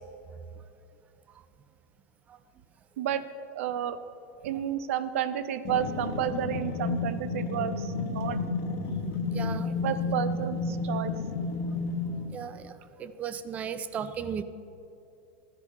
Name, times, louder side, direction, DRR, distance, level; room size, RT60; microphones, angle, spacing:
voice 1, 3.5-4.0 4.4-8.4 9.6-11.1, right 10 dB, 75° right, 12 dB, 0.6 m, -31 dB
sound 1, 5.6-12.4, left 4 dB, 40° left, 1.0 m, -31 dB
voice 2, 9.3-9.7 12.1-12.7 13.0-14.4, right 7 dB, 20° right, 13 dB, 0.4 m, -35 dB
13.0 x 9.8 x 3.6 m, 2.7 s
supercardioid pair, 155°, 7 cm